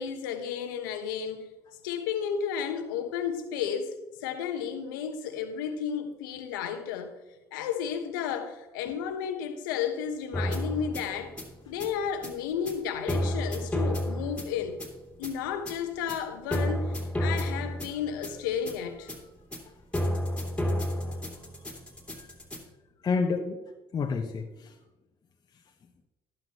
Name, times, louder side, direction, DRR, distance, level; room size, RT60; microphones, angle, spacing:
voice 1, 0.0-1.5 1.8-7.1 7.5-11.4 11.7-14.8 15.2-16.9 17.2-19.1, left 7 dB, 85° left, 1.1 m, -32 dB
sound 1, 10.3-22.6, equal, 10° left, 2.8 m, -31 dB
voice 2, 20.3-21.2 22.1-22.3 23.0-23.6 23.9-24.7, left 4 dB, 40° left, 1.1 m, -31 dB
12.0 x 11.5 x 3.0 m
hypercardioid pair, 65°, 11 cm